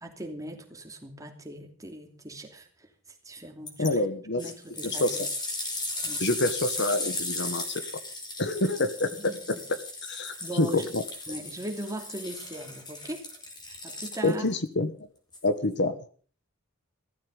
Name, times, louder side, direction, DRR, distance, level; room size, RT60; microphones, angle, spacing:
voice 1, 0.0-2.9 3.2-4.0 4.4-5.2 6.0-6.3 9.1-9.6 10.4-10.8 11.3-13.2 13.8-14.5, right 1 dB, 15° right, 4 dB, 2.9 m, -39 dB
sound 1, 3.7-3.9 4.4-14.5 15.3-15.4, left 2 dB, 20° left, 3.8 m, -36 dB
voice 2, 3.8-4.4 4.8-5.2 6.2-7.8 8.4-9.6 10.1-11.0 14.2-14.9 15.4-15.9, left 2 dB, 55° left, 11 dB, 1.4 m, -27 dB
16.0 x 14.0 x 5.4 m, 0.42 s
head